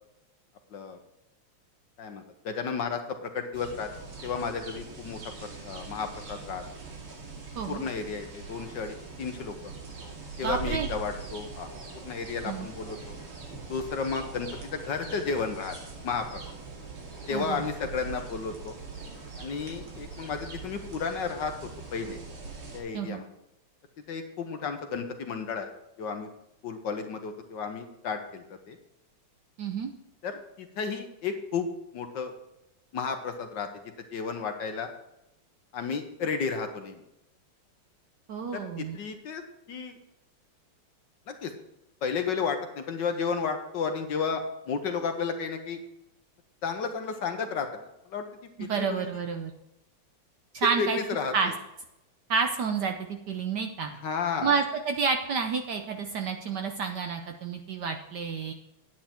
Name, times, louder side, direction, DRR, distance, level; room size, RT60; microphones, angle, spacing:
voice 1, 2.0-3.9 4.2-6.6 7.7-9.5 10.4-11.7 12.0-13.2 13.7-15.8 16.0-16.4 17.3-18.7 19.4-22.2 22.7-23.3 24.1-25.7 26.0-26.3 26.6-28.8 30.2-32.3 32.9-33.7 34.1-34.9 35.7-37.0 38.5-39.4 39.7-40.0 41.3-41.5 42.0-45.8 46.6-48.2 48.6-49.0 50.8-51.5 54.0-54.5, left 5 dB, 60° left, 6 dB, 1.5 m, -33 dB
sound 1, 3.5-22.8, right 4 dB, 85° right, 3.2 m, -42 dB
voice 2, 10.4-10.9 12.4-12.7 17.3-17.7 22.9-23.2 29.6-29.9 38.3-39.0 48.6-49.5 50.5-51.0 51.3-51.5 52.3-53.9 54.4-58.5, right 5 dB, 65° right, 5 dB, 1.1 m, -29 dB
9.3 x 9.2 x 4.4 m, 0.87 s
omnidirectional pair, 2.4 m